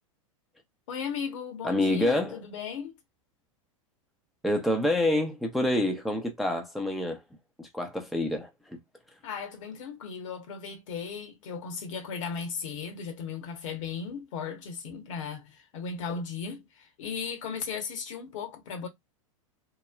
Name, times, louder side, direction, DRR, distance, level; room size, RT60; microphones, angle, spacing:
voice 1, 0.9-2.9 9.2-18.9, left 6 dB, 65° left, 1.1 m, -36 dB
voice 2, 1.6-2.4 4.4-7.2 7.6-8.8, left 1 dB, ahead, 0.5 m, -27 dB
3.1 x 2.1 x 2.3 m
hypercardioid pair, 105°, 17 cm